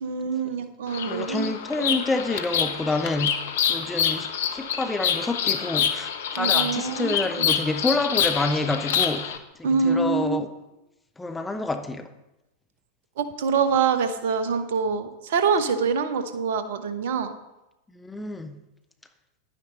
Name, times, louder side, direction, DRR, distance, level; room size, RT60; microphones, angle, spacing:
voice 1, 0.0-1.5 1.8-2.0 6.4-7.5 9.6-10.4 13.2-17.3, right 5 dB, 55° right, 10 dB, 0.9 m, -25 dB
Bird vocalization bird call bird song, 0.9-9.4, left 8 dB, 55° left, 0.8 m, -26 dB
voice 2, 1.0-3.3 3.7-10.5 11.2-12.1 17.9-18.6, left 2 dB, 10° left, 7 dB, 0.8 m, -28 dB
10.5 x 9.7 x 4.1 m, 0.95 s
figure-of-eight pair, 90°, 0 cm